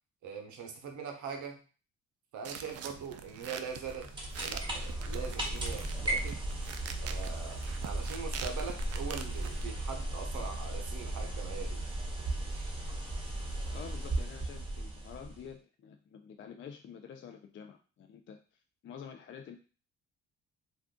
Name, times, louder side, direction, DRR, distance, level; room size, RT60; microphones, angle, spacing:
voice 1, 0.2-1.6 2.3-4.1 4.4-6.4 7.0-11.8 12.5-12.7, right 6 dB, 75° right, 3 dB, 0.8 m, -42 dB
sound 1, 2.4-9.7, right 7 dB, 55° right, 0.4 m, -45 dB
sound 2, 3.8-15.5, right 1 dB, 15° right, 1.0 m, -36 dB
voice 2, 13.7-18.4 18.8-19.6, left 7 dB, 40° left, 5 dB, 0.4 m, -48 dB
2.5 x 2.3 x 3.6 m, 0.36 s
cardioid pair, 90°, 30 cm